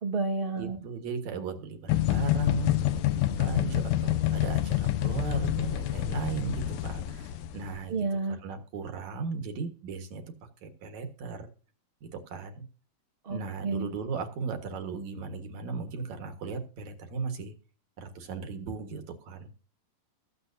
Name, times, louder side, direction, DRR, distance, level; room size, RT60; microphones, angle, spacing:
voice 1, 0.0-0.8 7.9-8.4 13.2-13.9, right 3 dB, 45° right, 3 dB, 0.7 m, -30 dB
voice 2, 0.5-8.0 8.3-10.2 10.6-11.5 12.0-12.6 13.3-17.5 18.0-19.5, right 4 dB, 60° right, 6 dB, 2.7 m, -36 dB
sound 1, 1.9-7.8, left 13 dB, 75° left, 1.9 m, -27 dB
21.5 x 7.4 x 2.7 m, 0.38 s
omnidirectional pair, 4.0 m